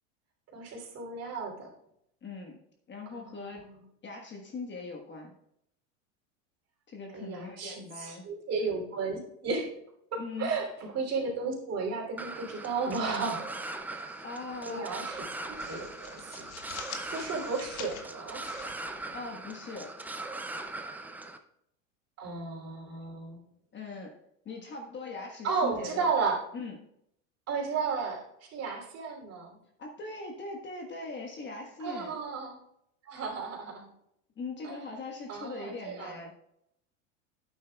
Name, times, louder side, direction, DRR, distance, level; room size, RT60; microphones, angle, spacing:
voice 1, 0.5-1.7 3.1-3.8 7.1-9.7 10.1-13.4 14.6-16.5 17.0-18.4 22.2-23.4 25.4-26.4 27.5-29.6 31.8-32.6 33.0-33.9 34.6-34.7 35.3-36.2, right 4 dB, 35° right, 0 dB, 3.2 m, -34 dB
voice 2, 2.2-2.6 2.9-3.7 4.0-5.3 6.9-8.2 10.2-10.6 14.2-14.9 19.1-19.9 23.7-24.2 24.4-26.1 26.5-26.8 29.8-32.2 34.4-36.3, left 3 dB, 25° left, 2 dB, 1.4 m, -40 dB
sound 1, 12.2-21.4, right 2 dB, 5° right, 0.4 m, -40 dB
sound 2, 13.4-14.2 14.5-14.7 15.1-19.6, left 7 dB, 85° left, 1.5 m, -47 dB
11.0 x 9.2 x 2.3 m, 0.75 s
supercardioid pair, 115°, 41 cm